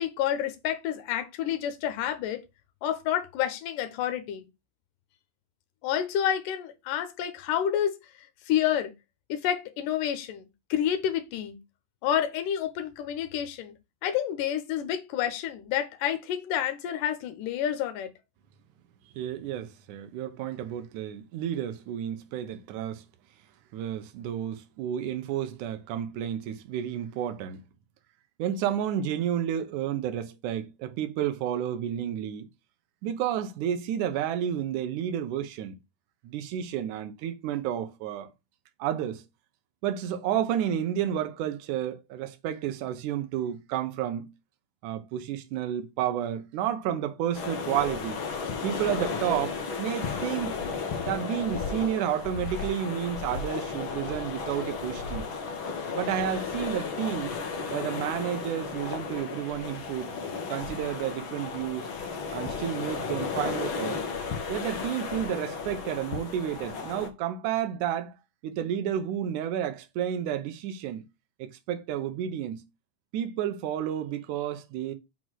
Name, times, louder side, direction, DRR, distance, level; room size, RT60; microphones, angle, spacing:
voice 1, 0.0-2.4 2.8-4.5 5.8-8.0 8.5-8.9 9.3-11.6 12.0-13.7 14.0-18.1, left 10 dB, 80° left, 2.6 m, -29 dB
voice 2, 19.2-23.0 23.7-27.6 28.4-32.5 33.0-35.8 36.2-38.3 38.8-39.2 39.8-44.3 44.8-48.2 48.6-50.6 51.0-55.3 55.9-57.4 57.7-60.1 60.5-61.9 62.3-64.0 64.5-68.1 68.4-71.0 71.4-72.7 73.1-74.9, right 10 dB, 75° right, 2.2 m, -31 dB
sound 1, 47.3-67.1, left 5 dB, 60° left, 1.3 m, -34 dB
6.1 x 3.9 x 6.2 m
omnidirectional pair, 3.8 m